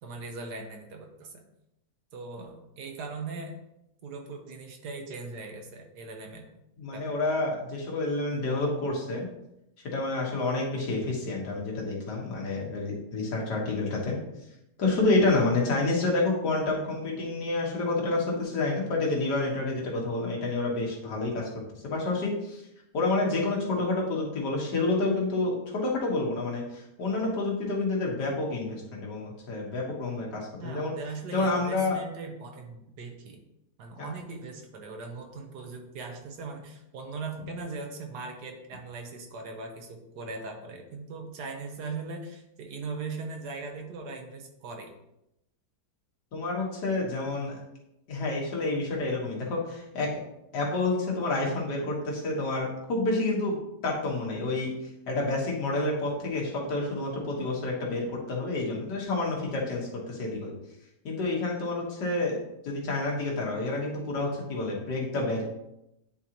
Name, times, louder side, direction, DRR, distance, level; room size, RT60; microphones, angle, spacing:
voice 1, 0.0-1.4 2.1-3.6 4.0-6.5 6.9-7.1 30.6-33.4 33.8-44.9, right 3 dB, 80° right, 4 dB, 1.5 m, -39 dB
voice 2, 6.8-9.3 9.8-14.2 14.8-21.5 21.8-22.6 22.9-30.9 31.3-32.0 34.0-34.1 46.3-47.6 48.1-50.1 50.5-53.6 53.8-54.7 55.1-60.5 61.0-62.4 62.6-65.4, left 2 dB, 85° left, -2 dB, 2.0 m, -29 dB
9.8 x 3.7 x 2.9 m, 0.85 s
omnidirectional pair, 1.8 m